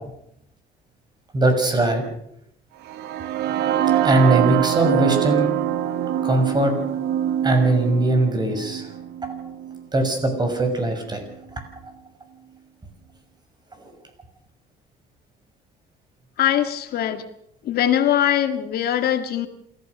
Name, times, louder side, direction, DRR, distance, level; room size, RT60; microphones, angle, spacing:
voice 1, 1.3-2.0 4.0-5.5 6.2-6.7 7.4-8.9 9.9-11.2 11.8-11.9 13.8-13.9, right 2 dB, 25° right, 6 dB, 6.3 m, -20 dB
sound 1, 2.9-10.8, right 11 dB, 85° right, 1.3 m, -24 dB
voice 2, 16.4-17.2 17.6-19.5, left 11 dB, 65° left, 8 dB, 1.9 m, -21 dB
27.5 x 15.0 x 6.6 m, 0.75 s
cardioid pair, 110°, 17 cm